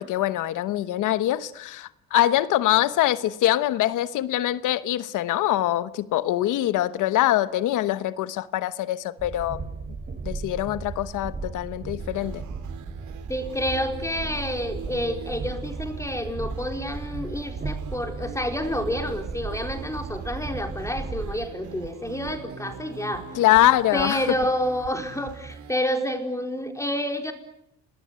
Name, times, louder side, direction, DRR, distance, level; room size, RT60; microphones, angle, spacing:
voice 1, 0.0-9.6 10.2-12.4 23.3-24.2, left 14 dB, 90° left, 1.1 m, -23 dB
Train, 9.2-21.4, right 4 dB, 30° right, 3.1 m, -35 dB
sound 1, 12.0-25.7, right 7 dB, 75° right, 2.8 m, -42 dB
voice 2, 13.3-23.3 23.9-27.3, left 1 dB, 10° left, 4.4 m, -29 dB
28.5 x 21.0 x 9.6 m
cardioid pair, 90°, 30 cm